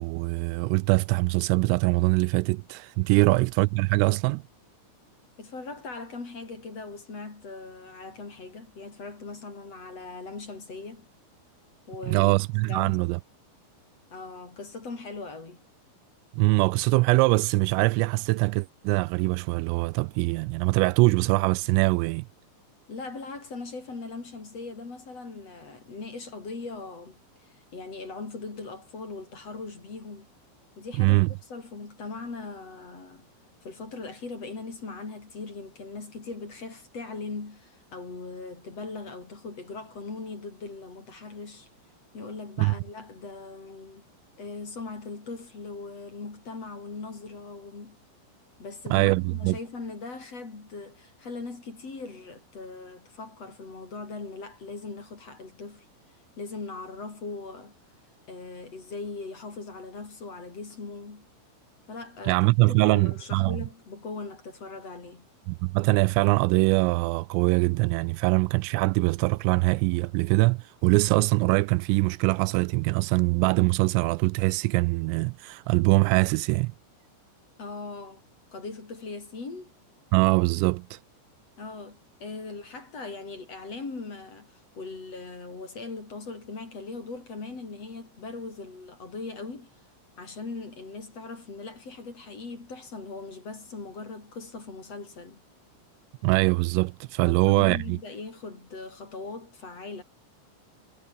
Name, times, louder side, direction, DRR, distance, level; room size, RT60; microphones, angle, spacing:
voice 1, 0.0-4.4 12.1-13.2 16.3-22.3 31.0-31.3 42.6-42.7 48.9-49.6 62.3-63.6 65.5-76.7 80.1-81.0 96.2-98.0, right 25 dB, 85° right, 3.1 m, -23 dB
voice 2, 5.4-11.1 11.9-12.4 12.7-13.0 14.1-15.6 22.9-30.3 30.8-31.2 31.5-33.3 33.6-41.7 42.1-44.0 44.4-48.0 48.6-55.9 56.4-57.8 58.3-61.3 61.9-65.3 77.6-78.2 78.5-79.7 81.6-89.7 90.2-95.4 97.2-100.0, left 3 dB, 30° left, 5.3 m, -40 dB
omnidirectional pair, 6.0 m